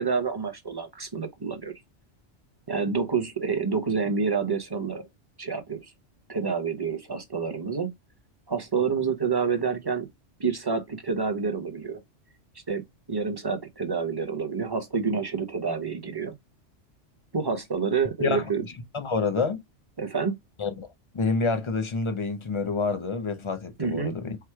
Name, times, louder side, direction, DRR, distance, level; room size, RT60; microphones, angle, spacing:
voice 1, 0.0-1.8 2.7-5.0 5.4-5.9 6.3-7.9 8.5-10.1 10.4-12.0 12.7-12.8 13.1-16.3 17.3-18.6 20.0-20.3 23.8-24.1, right 5 dB, 25° right, 0.6 m, -28 dB
voice 2, 18.2-19.6 20.6-20.9 21.1-24.4, left 4 dB, 35° left, 0.5 m, -28 dB
4.7 x 2.0 x 4.5 m
omnidirectional pair, 1.2 m